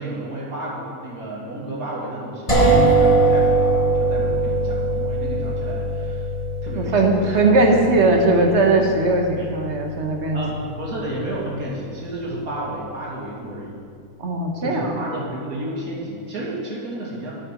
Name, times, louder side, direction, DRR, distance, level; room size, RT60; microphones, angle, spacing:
voice 1, 0.0-6.3 6.6-7.4 7.7-7.8 9.4-9.5 10.3-13.8 14.6-17.3, right 1 dB, 65° right, -5 dB, 2.8 m, -31 dB
sound 1, 2.5-12.3, right 2 dB, 20° left, 1.8 m, -22 dB
voice 2, 6.8-10.4 14.2-15.1, right 2 dB, 45° right, 2 dB, 1.5 m, -19 dB
12.5 x 8.6 x 5.2 m, 2.2 s
omnidirectional pair, 1.6 m